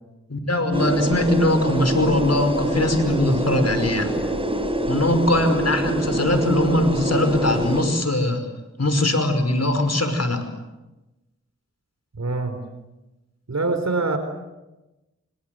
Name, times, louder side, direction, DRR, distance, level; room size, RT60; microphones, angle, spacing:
voice 1, 0.3-4.1 4.9-8.5 8.8-10.4, left 1 dB, 60° left, 8 dB, 5.3 m, -21 dB
sound 1, 0.7-7.8, right 1 dB, 20° right, 5.6 m, -25 dB
voice 2, 12.2-12.6 13.5-14.2, right 3 dB, 65° right, 8 dB, 4.3 m, -24 dB
28.0 x 25.0 x 7.9 m, 1.0 s
cardioid pair, 40°, 29 cm